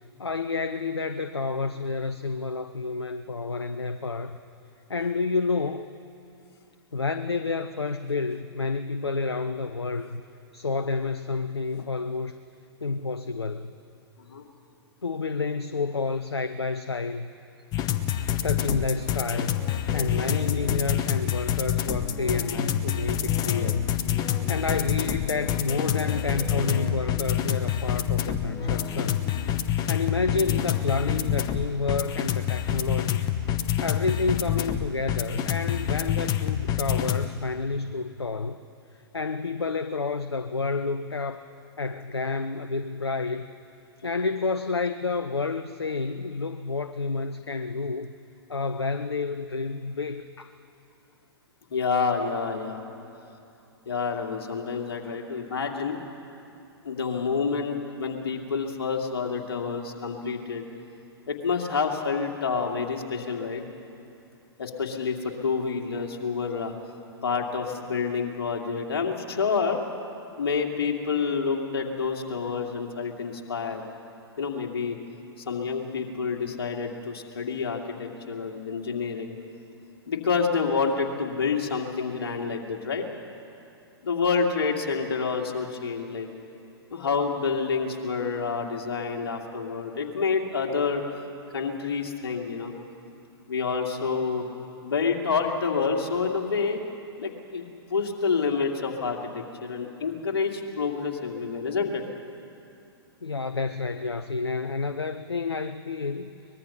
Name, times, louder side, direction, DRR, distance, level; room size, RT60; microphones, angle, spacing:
voice 1, 0.2-4.4 4.9-5.9 6.9-10.2 10.5-12.3 12.8-13.7 15.0-17.3 18.4-19.7 19.9-23.9 24.5-29.2 29.9-33.4 33.8-38.6 39.1-41.4 41.8-43.5 44.0-48.1 48.5-50.5 103.2-106.3, left 4 dB, 85° left, 10 dB, 0.6 m, -29 dB
sound 1, 17.7-37.3, left 10 dB, 30° left, 1.0 m, -27 dB
voice 2, 51.7-52.9 53.9-56.0 56.8-60.6 61.3-63.6 64.6-66.7 67.2-69.8 70.4-73.8 74.4-75.0 75.5-79.3 80.1-83.1 84.0-86.3 86.9-91.0 91.5-92.7 93.5-94.5 94.8-96.8 97.2-97.6 97.9-102.0, left 5 dB, 65° left, 2 dB, 2.5 m, -28 dB
23.5 x 20.5 x 5.8 m, 2.7 s
figure-of-eight pair, 105°, 13 cm